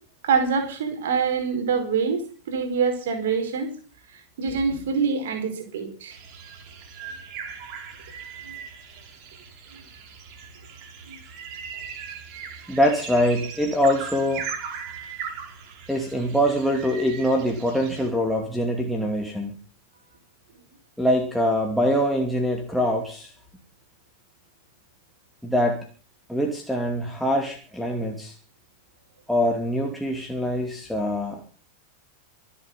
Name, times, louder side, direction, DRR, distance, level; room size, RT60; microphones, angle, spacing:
voice 1, 0.2-3.7 4.1-6.1 8.4-8.5 11.1-11.2, right 5 dB, 60° right, 5.0 m, -25 dB
sound 1, 6.1-18.1, right 7 dB, 40° right, 4.7 m, -39 dB
voice 2, 12.7-14.4 15.9-19.5 21.0-23.3 25.4-25.8 26.3-28.3 29.3-31.4, equal, ahead, 2.7 m, -24 dB
25.0 x 8.5 x 5.7 m
figure-of-eight pair, 90°, 0 cm